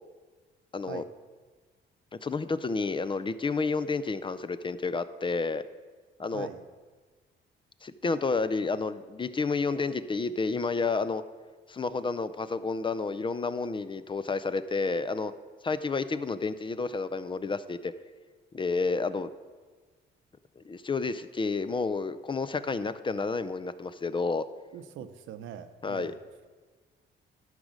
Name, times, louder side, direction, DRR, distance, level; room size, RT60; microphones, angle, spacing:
voice 1, 0.7-1.0 2.1-5.6 6.2-6.5 7.8-11.2 11.7-15.3 15.6-17.9 18.5-19.3 20.6-24.5 25.8-26.1, left 4 dB, 25° left, 14 dB, 0.4 m, -30 dB
voice 2, 6.3-6.7 24.7-26.2, right 9 dB, 80° right, 10 dB, 0.7 m, -42 dB
12.0 x 4.9 x 6.4 m, 1.4 s
cardioid pair, 90°, 20 cm